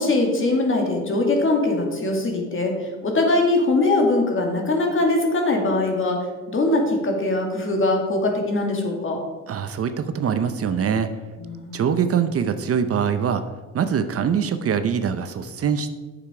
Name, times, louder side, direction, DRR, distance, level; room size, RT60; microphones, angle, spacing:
voice 1, 0.0-6.2 6.5-9.2 11.4-11.8, left 2 dB, 40° left, 2 dB, 2.1 m, -21 dB
voice 2, 9.5-11.1 11.7-13.4 13.7-15.9, right 7 dB, 50° right, 10 dB, 0.7 m, -23 dB
8.6 x 6.9 x 4.9 m, 1.3 s
cardioid pair, 90°, 30 cm